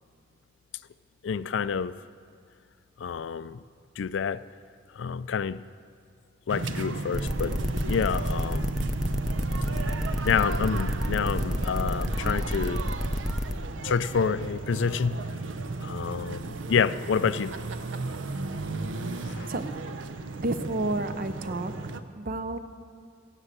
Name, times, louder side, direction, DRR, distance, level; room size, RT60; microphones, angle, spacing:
voice 1, 1.2-2.0 3.0-3.6 4.0-4.4 4.9-5.6 6.5-7.6 7.9-8.7 10.2-12.9 13.8-15.2 15.8-17.5 19.2-19.5, left 6 dB, 75° left, 16 dB, 0.4 m, -28 dB
sound 1, 6.5-22.0, right 3 dB, 85° right, 0.7 m, -34 dB
sound 2, 7.1-13.5, equal, 5° right, 0.5 m, -29 dB
voice 2, 20.4-21.7 22.2-22.6, right 2 dB, 50° right, 11 dB, 0.7 m, -30 dB
16.0 x 8.1 x 7.4 m, 2.3 s
head